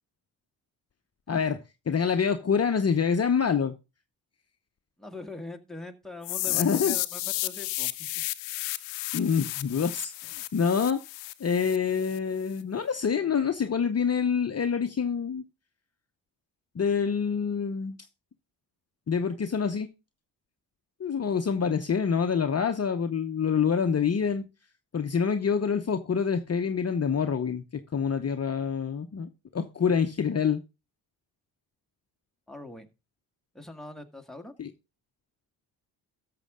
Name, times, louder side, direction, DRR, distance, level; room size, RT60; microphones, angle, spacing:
voice 1, 1.3-1.6 1.9-3.7 6.5-7.0 9.1-11.0 11.4-15.4 16.7-18.0 19.1-19.9 21.0-24.5 24.9-30.6 34.6-34.7, left 6 dB, 35° left, 0.9 m, -26 dB
voice 2, 5.0-7.9 32.5-32.9 33.5-34.5, left 2 dB, ahead, 1.8 m, -42 dB
sound 1, 6.2-12.2, left 19 dB, 85° left, 0.7 m, -33 dB
13.5 x 6.8 x 3.7 m
supercardioid pair, 50°, 44 cm